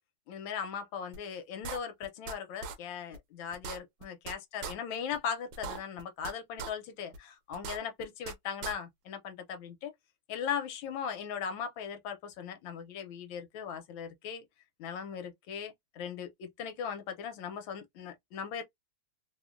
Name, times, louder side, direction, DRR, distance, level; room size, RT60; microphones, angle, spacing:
voice 1, 0.3-9.9 10.3-14.4 14.8-18.6, left 7 dB, 75° left, 1.4 m, -38 dB
sound 1, 1.1-1.2 1.6-2.3 2.6-2.8 3.1-3.2 3.5-4.3 4.6-4.7 5.1-5.2 5.5-6.3 6.6-6.7 7.1-7.2 7.5-8.3 8.6-8.7, right 5 dB, 75° right, 1.2 m, -39 dB
3.3 x 2.1 x 2.4 m
omnidirectional pair, 2.2 m